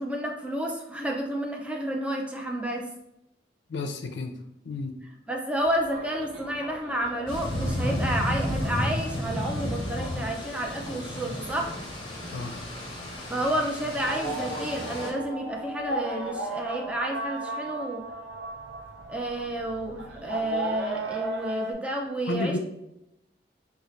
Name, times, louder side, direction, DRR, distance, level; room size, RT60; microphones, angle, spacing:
voice 1, 0.0-2.9 5.3-11.7 13.3-18.0 19.1-22.6, right 1 dB, 5° right, 0 dB, 0.4 m, -30 dB
voice 2, 3.7-4.4 4.6-5.0 12.3-12.6 22.3-22.6, left 3 dB, 70° left, 5 dB, 0.4 m, -31 dB
Call to prayer (Khan El Khalili rooftop), 5.6-21.7, right 1 dB, 90° right, 0.6 m, -37 dB
sound 1, 7.3-15.1, left 1 dB, 25° left, 0.8 m, -32 dB
3.8 x 2.4 x 3.1 m, 0.85 s
head